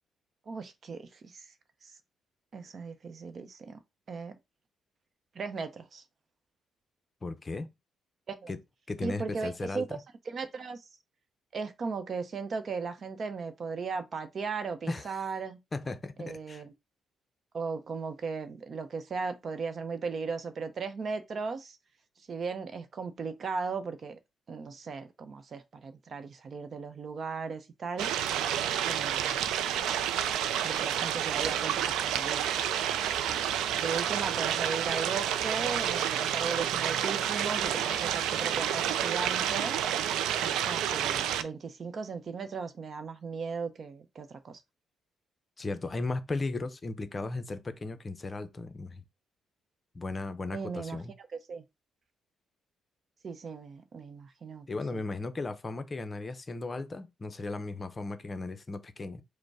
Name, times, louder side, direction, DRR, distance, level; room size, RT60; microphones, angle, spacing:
voice 1, 0.5-1.5 1.8-1.9 2.5-3.8 4.1-4.3 5.3-6.0 8.3-8.5 9.0-9.9 10.3-10.8 11.5-15.6 16.2-16.7 17.5-21.8 22.3-24.2 24.5-28.1 28.9-29.5 30.6-32.4 33.8-39.8 40.4-44.6 50.5-51.0 51.5-51.6 53.2-54.7 54.9-55.0, right 5 dB, 45° right, 0.7 m, -37 dB
voice 2, 7.2-7.7 8.5-8.6 8.9-10.0 14.9-15.2 15.7-16.6 45.6-49.0 49.9-51.1 54.7-59.2, left 3 dB, 30° left, 0.6 m, -36 dB
sound 1, 28.0-41.4, right 10 dB, 90° right, 0.4 m, -29 dB
5.1 x 2.1 x 4.7 m
cardioid pair, 90°, 0 cm